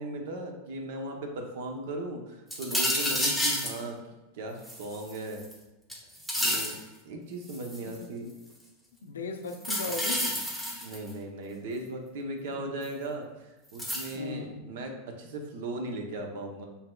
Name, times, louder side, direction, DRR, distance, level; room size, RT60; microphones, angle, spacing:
voice 1, 0.0-4.0 4.3-5.4 6.4-8.3 10.8-16.6, right 2 dB, 70° right, 3 dB, 0.7 m, -37 dB
sound 1, 2.5-3.8 4.6-5.5 5.9-6.8 7.5-7.9 9.5-11.1 12.8-12.9 13.8-14.1, equal, 5° right, 1.1 m, -30 dB
voice 2, 3.0-3.4 7.8-8.1 9.0-10.5 12.5-12.7 14.1-14.6, left 4 dB, 90° left, 5 dB, 0.5 m, -38 dB
5.8 x 2.7 x 2.2 m, 1.1 s
hypercardioid pair, 110°, 0 cm